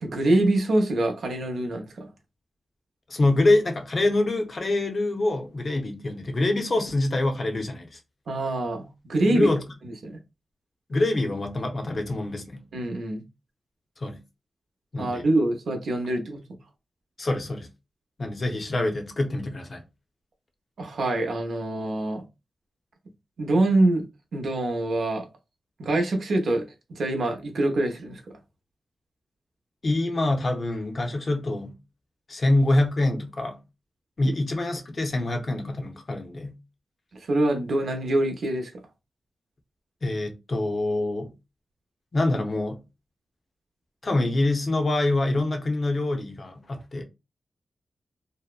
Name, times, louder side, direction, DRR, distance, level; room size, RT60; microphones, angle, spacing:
voice 1, 0.0-2.1 8.3-9.5 9.8-10.2 12.7-13.2 15.0-16.4 20.8-22.2 23.4-24.1 24.3-25.3 25.8-26.6 26.9-28.2 34.3-34.4 37.2-38.7, right 2 dB, 80° right, 0.6 m, -25 dB
voice 2, 3.1-8.0 9.3-9.6 10.9-12.6 14.0-14.2 14.9-15.2 17.2-17.7 18.2-19.8 29.8-31.8 32.3-33.6 34.2-36.6 40.0-41.3 42.1-42.8 44.0-47.0, left 2 dB, 45° left, 0.6 m, -25 dB
2.7 x 2.1 x 2.3 m
wide cardioid pair, 90°, 0 cm